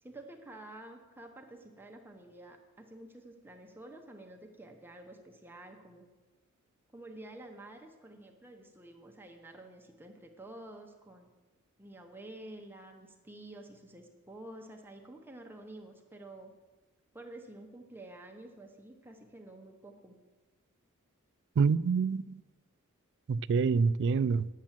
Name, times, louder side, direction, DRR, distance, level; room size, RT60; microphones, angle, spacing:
voice 1, 0.0-6.1 6.9-11.3 11.8-16.5 17.1-20.1, right 1 dB, 10° right, 0.9 m, -50 dB
voice 2, 21.6-22.4 23.3-24.5, right 5 dB, 55° right, 0.3 m, -26 dB
10.5 x 7.4 x 7.4 m
head